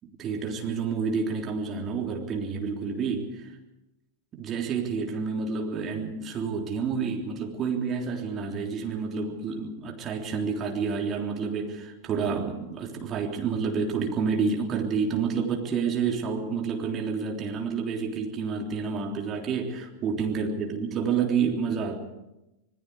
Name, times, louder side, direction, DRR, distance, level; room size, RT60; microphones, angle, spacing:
voice 1, 0.2-3.6 4.3-22.0, right 5 dB, 30° right, 1 dB, 3.5 m, -29 dB
27.0 x 20.0 x 4.9 m, 0.96 s
figure-of-eight pair, 90°, 0 cm